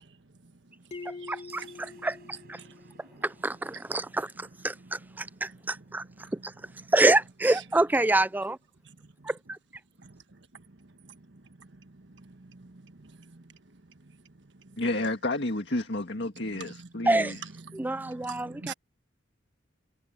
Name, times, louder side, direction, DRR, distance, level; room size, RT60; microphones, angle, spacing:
voice 1, 0.0-2.2 2.5-3.2 3.7-6.9 7.5-7.6 8.8-9.3 10.0-10.1 10.5-14.8 16.3-18.7, right 5 dB, 70° right, 1.4 m, -49 dB
sound 1, 0.9-3.5, left 4 dB, 35° left, 1.6 m, -45 dB
voice 2, 1.3-1.6 2.0-2.2 2.5-2.6 3.2-4.7 5.2-6.0 6.9-8.6 17.1-17.3 17.7-18.7, right 2 dB, 10° right, 0.4 m, -26 dB
sound 2, 1.5-6.4, right 3 dB, 55° right, 6.1 m, -60 dB
voice 3, 14.8-17.4, left 2 dB, 65° left, 1.9 m, -30 dB
head